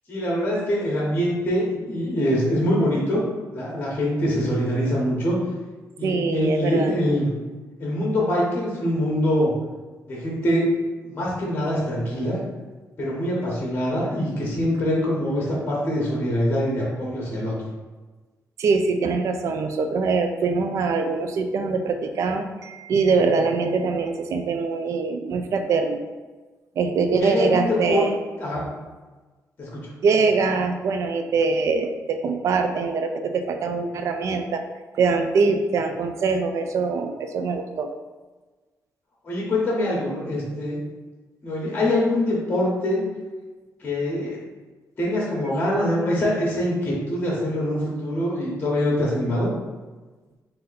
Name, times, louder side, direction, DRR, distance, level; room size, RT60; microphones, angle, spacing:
voice 1, 0.1-3.2 3.5-5.4 6.0-7.3 7.8-9.5 10.1-10.7 11.0-12.4 13.0-17.5 27.2-28.1 28.4-28.6 29.6-29.8 39.2-40.8 41.4-43.0 43.8-44.4 45.0-49.5, left 1 dB, 30° left, -4 dB, 1.0 m, -24 dB
voice 2, 6.0-6.9 18.6-26.0 26.8-28.1 30.0-34.6 35.0-37.9, right 4 dB, 55° right, 6 dB, 0.4 m, -23 dB
4.1 x 2.6 x 4.0 m, 1.3 s
wide cardioid pair, 180°, 6 cm